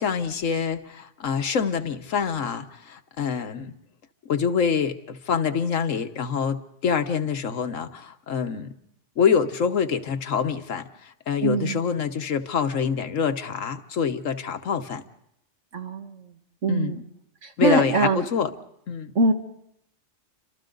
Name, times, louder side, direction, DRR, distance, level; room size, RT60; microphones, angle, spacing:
voice 1, 0.0-3.7 4.2-8.7 9.2-15.0 16.7-17.0 17.6-18.5 18.9-19.1, left 6 dB, 85° left, 8 dB, 1.5 m, -26 dB
voice 2, 11.4-11.8 15.7-16.1 16.6-17.0 17.6-18.2 19.2-19.3, right 3 dB, 70° right, 5 dB, 1.9 m, -22 dB
29.5 x 26.0 x 3.9 m, 0.76 s
omnidirectional pair, 1.3 m